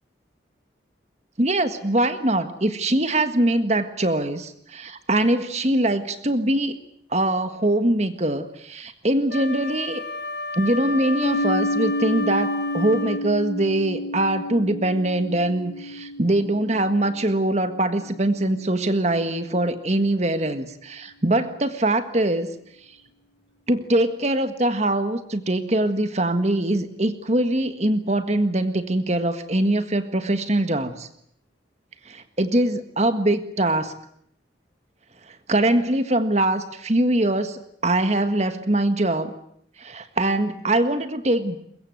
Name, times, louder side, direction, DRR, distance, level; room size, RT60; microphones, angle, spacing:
voice 1, 1.4-6.8 7.1-10.0 10.6-22.5 23.7-31.1 32.0-33.9 35.3-39.3 39.8-41.6, right 1 dB, 35° right, 10 dB, 1.6 m, -23 dB
Wind instrument woodwind instrument, 9.3-13.3, left 2 dB, 70° left, 2.4 m, -32 dB
sound 1, 11.2-19.0, left 1 dB, 85° left, 5.5 m, -31 dB
23.0 x 22.0 x 9.3 m, 0.70 s
head